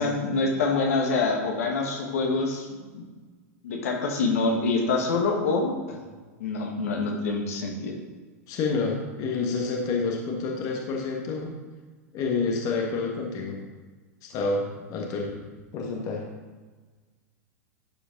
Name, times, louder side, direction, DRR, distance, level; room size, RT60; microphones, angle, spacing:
voice 1, 0.0-2.7 2.9-3.1 3.6-6.0 6.4-7.9, left 3 dB, 70° left, 1 dB, 1.6 m, -26 dB
voice 2, 8.5-11.5 12.1-13.6 14.2-15.4 15.7-16.3, left 4 dB, 45° left, 0 dB, 1.4 m, -28 dB
12.0 x 5.2 x 3.9 m, 1.4 s
hypercardioid pair, 95°, 8 cm